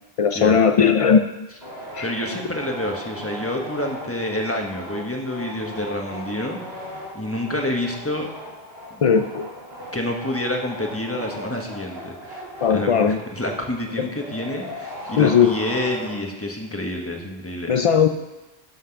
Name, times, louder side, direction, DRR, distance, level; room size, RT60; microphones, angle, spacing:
voice 1, 0.2-1.2 1.9-2.1 9.0-9.5 12.6-13.2 14.0-14.1 15.2-15.5 17.7-18.1, left 7 dB, 60° left, 7 dB, 0.3 m, -17 dB
sound 1, 1.6-16.6, equal, 70° right, 2.7 m, -38 dB
voice 2, 2.0-6.6 7.1-8.3 8.9-9.2 9.9-12.4 12.7-17.7, left 1 dB, 15° left, 1 dB, 1.3 m, -28 dB
12.0 x 5.9 x 5.8 m, 1.0 s
omnidirectional pair, 1.1 m